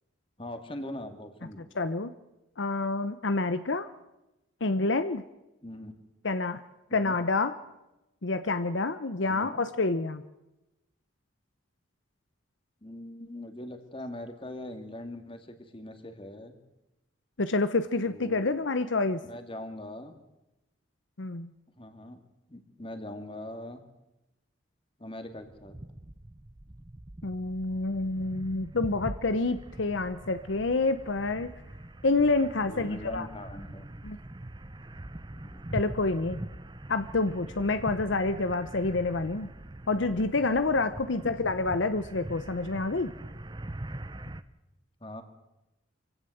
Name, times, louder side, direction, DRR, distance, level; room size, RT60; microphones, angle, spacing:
voice 1, 0.4-1.7 5.6-5.9 6.9-7.2 9.3-9.6 12.8-16.6 18.0-18.7 19.3-20.1 21.7-22.2 22.5-23.8 25.0-25.8 32.6-33.9 35.5-35.7 41.2-41.5 45.0-45.2, left 1 dB, 25° left, 8 dB, 2.1 m, -41 dB
voice 2, 1.8-2.1 2.6-3.9 4.6-5.2 6.2-6.6 6.9-7.5 8.2-10.2 17.4-19.2 21.2-21.5 27.2-31.5 32.0-33.3 34.0-34.2 35.7-36.4 36.9-39.5 39.9-43.1, left 3 dB, 70° left, 12 dB, 0.9 m, -28 dB
sound 1, 25.3-44.4, right 1 dB, 20° right, 0.8 m, -43 dB
24.5 x 16.5 x 7.8 m, 0.95 s
head